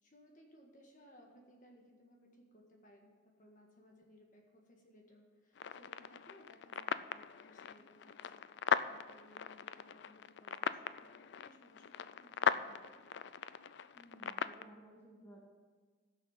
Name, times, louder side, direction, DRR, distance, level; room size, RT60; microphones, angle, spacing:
voice 1, 0.0-8.4 8.8-13.1, equal, 40° left, 0 dB, 1.6 m, -62 dB
sound 1, 5.6-14.6, left 7 dB, 55° left, 0.3 m, -39 dB
voice 2, 13.9-15.4, right 1 dB, 10° left, -2 dB, 1.4 m, -57 dB
15.5 x 6.4 x 5.7 m, 1.4 s
head